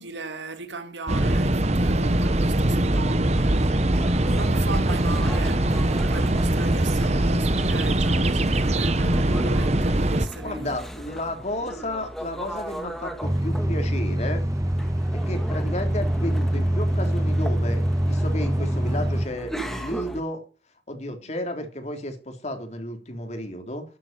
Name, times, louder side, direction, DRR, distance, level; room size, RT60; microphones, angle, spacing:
voice 1, 0.0-10.7, right 3 dB, 80° right, 2.2 m, -37 dB
sound 1, 1.1-10.3, right 1 dB, 35° right, 1.0 m, -22 dB
sound 2, 3.3-20.2, equal, ahead, 2.0 m, -37 dB
voice 2, 10.4-14.4 15.3-20.4 20.9-23.8, left 1 dB, 40° left, 3.5 m, -32 dB
sound 3, 13.2-19.3, equal, 20° right, 1.2 m, -24 dB
13.0 x 9.0 x 9.3 m
head